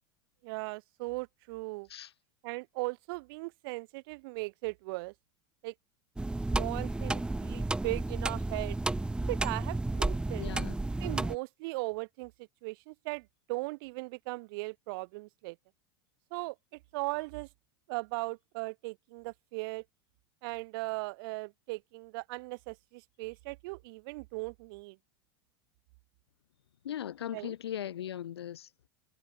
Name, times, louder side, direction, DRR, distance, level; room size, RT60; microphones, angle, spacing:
voice 1, 0.4-1.9 2.4-5.1 5.6-5.7 6.5-8.8 9.3-10.5 11.0-12.3 12.6-15.6 16.3-16.5 16.9-17.5 17.9-19.8 20.4-25.0 27.3-27.5, right 25 dB, 65° right, 1.1 m, -38 dB
sound 1, 6.2-11.4, right 2 dB, 5° right, 0.8 m, -32 dB
voice 2, 10.4-10.8 26.8-28.7, left 10 dB, 85° left, 2.1 m, -38 dB
hypercardioid pair, 95°, 13 cm